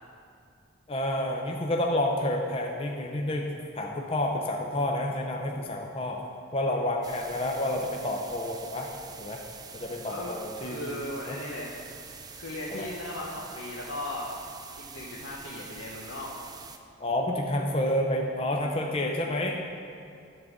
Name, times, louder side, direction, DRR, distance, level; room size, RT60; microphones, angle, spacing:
voice 1, 0.9-6.2 6.5-8.9 9.2-9.4 9.7-11.0 11.3-11.4 12.7-12.9 17.0-19.6, left 1 dB, 25° left, 0 dB, 0.6 m, -29 dB
sound 1, 7.0-16.8, right 5 dB, 20° right, 0.4 m, -46 dB
voice 2, 10.0-10.3 10.6-11.7 12.3-14.4 14.8-16.3, left 1 dB, 80° left, -3 dB, 0.9 m, -37 dB
11.0 x 3.8 x 7.2 m, 2.5 s
head